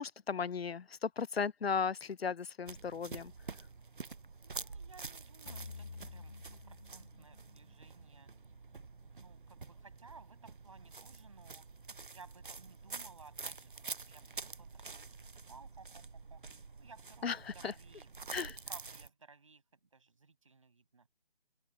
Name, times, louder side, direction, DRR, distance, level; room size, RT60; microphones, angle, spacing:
voice 1, 0.0-3.3 17.2-17.7 18.3-18.6, left 6 dB, 75° left, 0.6 m, -36 dB
sound 1, 2.7-19.1, right 4 dB, 55° right, 0.7 m, -48 dB
voice 2, 4.4-8.3 9.1-11.7 12.1-16.0 16.3-16.4 16.8-18.1 18.4-21.1, right 4 dB, 30° right, 6.1 m, -58 dB
sound 2, 5.5-8.7, left 4 dB, 25° left, 3.0 m, -50 dB
open air
figure-of-eight pair, 180°, 31 cm